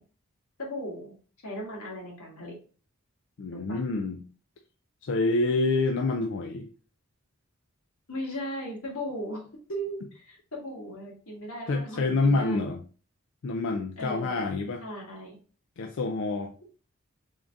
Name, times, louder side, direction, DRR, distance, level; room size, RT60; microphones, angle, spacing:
voice 1, 0.6-1.1 1.4-2.6 3.5-3.8 8.1-9.4 9.7-12.7 14.0-14.5 14.8-15.4, equal, 85° left, -2 dB, 1.5 m, -37 dB
voice 2, 3.4-4.2 5.0-6.7 11.7-12.8 13.4-14.8 15.8-16.5, left 3 dB, 60° left, 4 dB, 0.4 m, -27 dB
3.6 x 2.6 x 3.5 m, 0.39 s
head